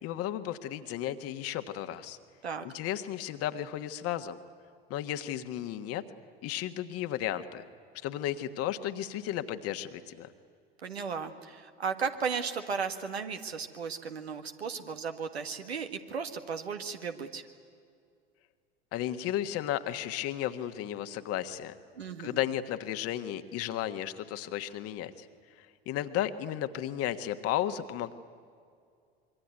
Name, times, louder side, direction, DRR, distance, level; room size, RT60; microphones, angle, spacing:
voice 1, 0.0-2.2 2.6-4.4 4.9-6.0 6.4-7.6 8.0-10.3 18.9-21.8 22.2-25.3 25.6-28.1, left 12 dB, 50° left, 9 dB, 1.5 m, -34 dB
voice 2, 10.8-17.4 22.0-22.4, right 6 dB, 80° right, 7 dB, 1.6 m, -35 dB
26.0 x 23.0 x 9.6 m, 2.3 s
figure-of-eight pair, 70°, 31 cm